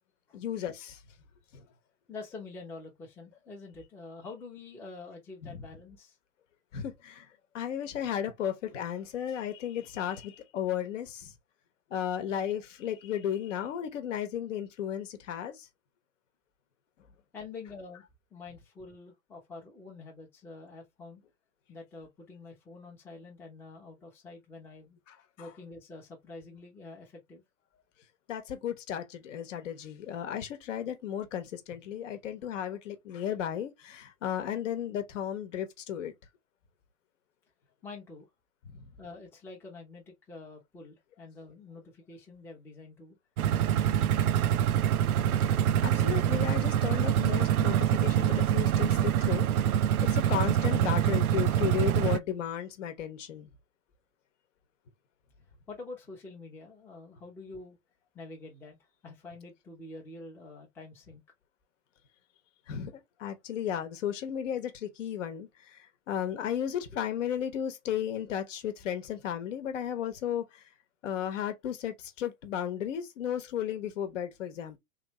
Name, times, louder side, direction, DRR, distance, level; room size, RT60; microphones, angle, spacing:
voice 1, 0.3-1.0 1.5-1.6 5.4-5.6 6.7-7.3 7.5-11.3 11.9-15.7 25.1-25.5 28.3-36.1 38.7-38.9 45.4-49.5 50.1-53.5 62.7-70.7 71.0-74.8, left 9 dB, 50° left, 1.0 m, -34 dB
voice 2, 2.1-6.2 17.3-18.0 18.3-21.2 21.7-25.0 25.4-27.4 37.8-38.3 39.0-43.2 43.7-44.4 55.7-57.8 58.1-58.8 59.0-61.2, left 3 dB, 5° left, 0.6 m, -46 dB
sound 1, 43.4-52.2, right 10 dB, 65° right, 0.5 m, -25 dB
3.2 x 2.7 x 2.9 m
hypercardioid pair, 120°, 46 cm